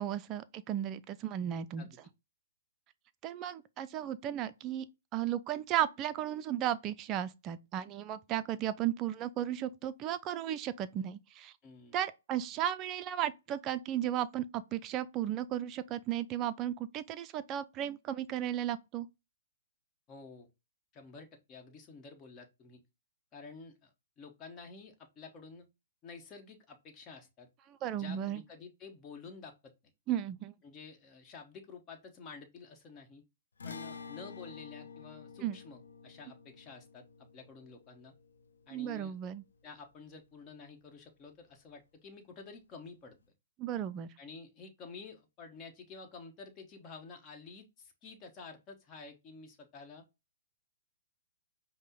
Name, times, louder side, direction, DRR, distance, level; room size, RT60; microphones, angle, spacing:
voice 1, 0.0-1.8 3.2-4.9 5.1-11.5 11.9-19.1 27.8-28.4 30.1-30.5 35.4-35.6 38.7-39.4 43.6-44.1, right 11 dB, 25° right, 0.4 m, -35 dB
voice 2, 11.6-12.0 20.1-20.5 20.9-22.8 23.3-25.7 26.0-27.5 27.9-29.7 30.6-33.2 33.6-38.1 38.7-39.1 39.6-43.2 44.2-50.0, left 4 dB, 25° left, 1.1 m, -50 dB
sound 1, 33.6-40.1, left 5 dB, 85° left, 0.7 m, -50 dB
5.3 x 2.1 x 3.8 m
hypercardioid pair, 135°, 0 cm